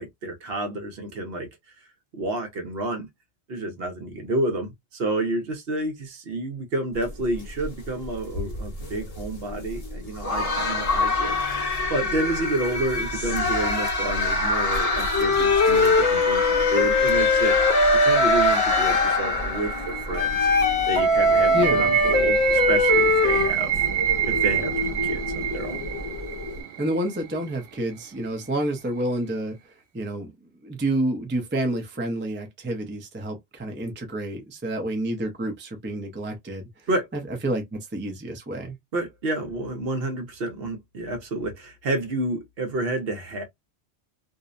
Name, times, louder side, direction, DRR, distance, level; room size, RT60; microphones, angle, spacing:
voice 1, 0.0-1.5 2.1-3.1 3.5-11.4 11.9-20.4 20.9-23.7 24.3-25.8 36.9-37.1 38.9-43.4, right 2 dB, 60° right, 0.9 m, -29 dB
sound 1, 7.0-26.6, left 2 dB, 35° left, 0.8 m, -28 dB
Wind instrument woodwind instrument, 15.1-19.2 20.2-23.5, left 3 dB, 70° left, 0.9 m, -20 dB
sound 2, 18.5-27.5, right 13 dB, 90° right, 0.9 m, -27 dB
voice 2, 26.8-29.6 29.9-38.8, right 1 dB, 15° right, 0.4 m, -29 dB
2.6 x 2.0 x 2.4 m
omnidirectional pair, 1.2 m